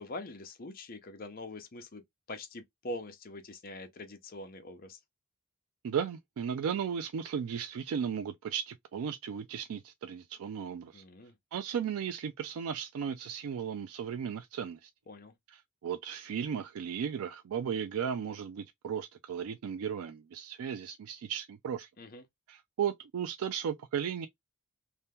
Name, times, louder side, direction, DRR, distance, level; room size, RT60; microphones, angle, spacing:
voice 1, 0.0-2.0 2.3-5.0 10.9-11.3 15.1-15.3 22.0-22.2, left 2 dB, 40° left, 0.6 m, -43 dB
voice 2, 5.8-11.0 11.5-14.9 15.5-21.9 22.5-24.3, right 7 dB, 75° right, 0.3 m, -35 dB
2.8 x 2.1 x 3.4 m
head